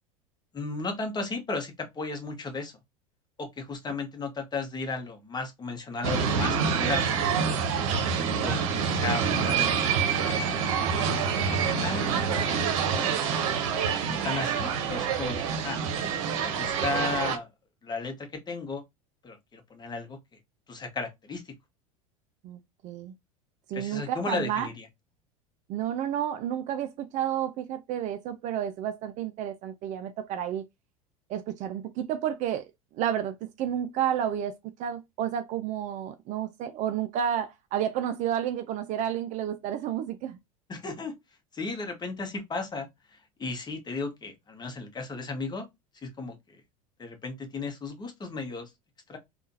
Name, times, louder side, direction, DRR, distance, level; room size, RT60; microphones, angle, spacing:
voice 1, 0.5-2.7 3.4-7.0 7.7-7.9 8.1-8.6 8.9-10.4 11.0-12.7 12.9-13.6 14.1-15.8 16.4-17.5 17.8-18.8 19.2-20.2 20.7-21.4 23.7-24.9 40.7-41.2 41.5-42.9 43.4-45.7 46.0-46.4 47.0-48.7 49.1-49.2, left 3 dB, 20° left, 1.1 m, -35 dB
sound 1, 6.0-17.4, right 6 dB, 60° right, 0.8 m, -27 dB
voice 2, 22.4-23.1 23.7-24.7 25.7-30.7 31.3-32.6 33.0-40.4, right 10 dB, 40° right, 0.4 m, -31 dB
3.6 x 2.4 x 2.7 m
hypercardioid pair, 80°, 19 cm